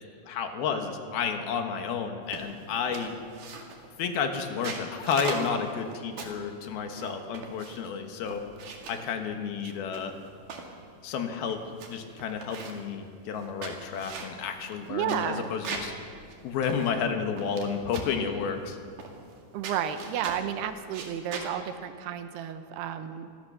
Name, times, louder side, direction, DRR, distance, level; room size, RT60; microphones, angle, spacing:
voice 1, 0.3-3.1 4.0-8.4 8.9-10.1 11.0-15.9 16.4-18.8, left 6 dB, 70° left, 5 dB, 3.1 m, -31 dB
sound 1, 2.3-2.6 2.9-3.9 4.4-6.5 7.0-7.9 8.3-9.1 9.7-10.7 11.2-11.3 11.5-11.9 12.2-12.9 13.4-16.0 16.3-16.4 16.6-17.7 17.9-18.2 19.0-19.4 19.6-20.5 20.9-21.5, right 4 dB, 55° right, 3.3 m, -39 dB
voice 2, 14.9-15.5 19.5-23.3, right 9 dB, 80° right, 9 dB, 2.9 m, -32 dB
26.0 x 15.0 x 6.8 m, 2.2 s
omnidirectional pair, 4.8 m